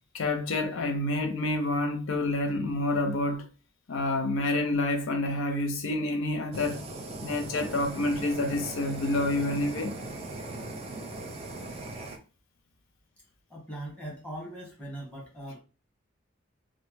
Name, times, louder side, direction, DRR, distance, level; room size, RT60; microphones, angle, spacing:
voice 1, 0.1-3.4 3.9-6.8 7.2-9.9, left 2 dB, 80° left, 0.5 m, -28 dB
Fire, 6.5-12.2, right 2 dB, 30° right, 0.5 m, -39 dB
voice 2, 13.5-15.6, right 1 dB, 5° left, 1.1 m, -40 dB
3.1 x 2.1 x 3.1 m
head